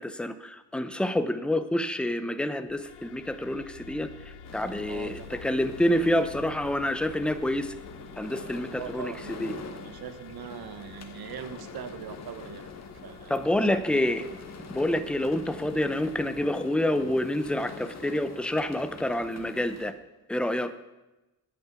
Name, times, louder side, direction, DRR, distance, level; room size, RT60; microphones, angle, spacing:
voice 1, 0.0-4.1 4.5-7.7 8.2-9.5 13.3-14.3 14.7-19.9 20.3-20.7, left 1 dB, 5° left, 10 dB, 0.7 m, -28 dB
sound 1, 2.7-16.4, left 6 dB, 80° left, 1.1 m, -49 dB
sound 2, 4.4-19.9, left 4 dB, 40° left, 1.6 m, -45 dB
voice 2, 4.9-5.4 8.8-12.6 13.0-14.0, right 8 dB, 70° right, 11 dB, 1.2 m, -41 dB
9.7 x 8.8 x 8.2 m, 1.0 s
cardioid pair, 110°, 39 cm